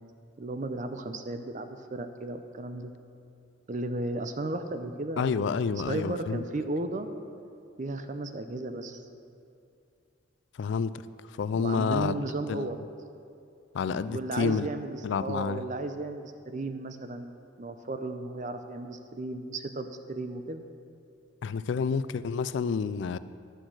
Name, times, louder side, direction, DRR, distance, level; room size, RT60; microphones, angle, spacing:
voice 1, 0.4-2.9 3.7-5.6 5.9-7.1 7.8-9.0 11.5-12.8 14.1-17.3 17.6-20.6, right 2 dB, 40° right, 8 dB, 0.6 m, -34 dB
voice 2, 5.2-6.4 10.6-11.0 11.4-12.1 12.5-12.7 13.7-14.7 15.0-15.6 21.4-23.2, left 5 dB, 70° left, 15 dB, 0.3 m, -29 dB
11.5 x 6.4 x 6.1 m, 2.5 s
head